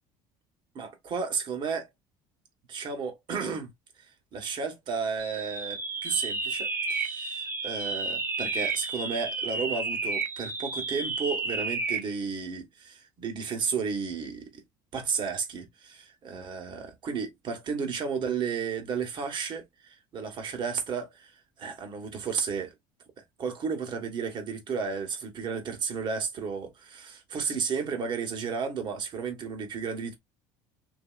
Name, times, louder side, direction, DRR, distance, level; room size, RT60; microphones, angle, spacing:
voice 1, 0.7-1.9 2.7-3.7 4.3-14.6 14.9-22.7 23.2-30.1, right 5 dB, 45° right, 1.2 m, -33 dB
sound 1, 5.2-12.1, right 3 dB, 20° right, 0.7 m, -32 dB
3.0 x 2.7 x 2.3 m
supercardioid pair, 100°, 11 cm